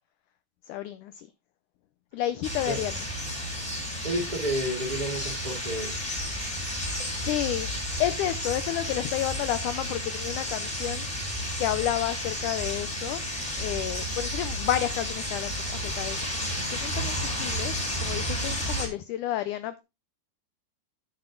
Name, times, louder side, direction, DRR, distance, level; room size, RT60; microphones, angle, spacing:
voice 1, 0.7-1.3 2.1-2.9 7.2-11.1 11.6-13.2 13.6-16.2 16.7-19.8, left 13 dB, 90° left, 1.7 m, -31 dB
sound 1, 2.4-18.9, equal, 10° left, 3.3 m, -32 dB
voice 2, 4.0-6.2, right 1 dB, 15° right, 2.4 m, -31 dB
9.5 x 7.9 x 3.7 m
omnidirectional pair, 4.3 m